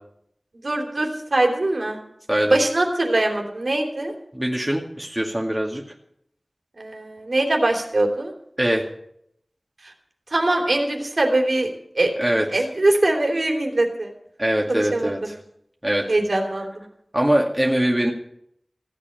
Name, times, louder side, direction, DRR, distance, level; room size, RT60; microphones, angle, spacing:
voice 1, 0.6-2.0 2.4-4.1 6.8-8.3 9.8-9.9 10.3-12.1 12.5-14.1 14.7-15.1 16.1-16.8, right 2 dB, 75° right, 2 dB, 3.1 m, -22 dB
voice 2, 4.3-5.8 8.6-8.9 12.2-12.5 14.4-15.3 15.8-16.1 17.1-18.1, right 1 dB, 15° right, -1 dB, 2.2 m, -22 dB
16.5 x 8.2 x 9.1 m, 0.72 s
wide cardioid pair, 55°, 0 cm